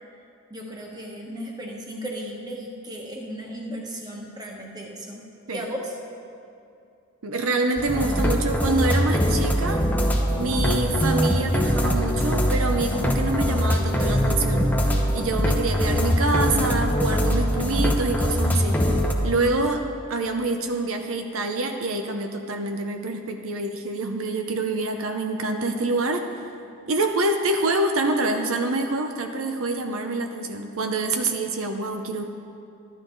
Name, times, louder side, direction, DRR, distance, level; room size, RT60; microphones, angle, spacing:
voice 1, 0.5-6.0, equal, 20° right, -1 dB, 1.3 m, -35 dB
voice 2, 7.2-9.8 10.4-14.7 15.1-18.8 19.2-19.8 20.1-26.3 26.9-32.2, right 2 dB, 70° right, 5 dB, 0.7 m, -26 dB
sound 1, 7.8-19.1, equal, 10° left, 0.8 m, -22 dB
14.0 x 12.0 x 3.9 m, 2.5 s
head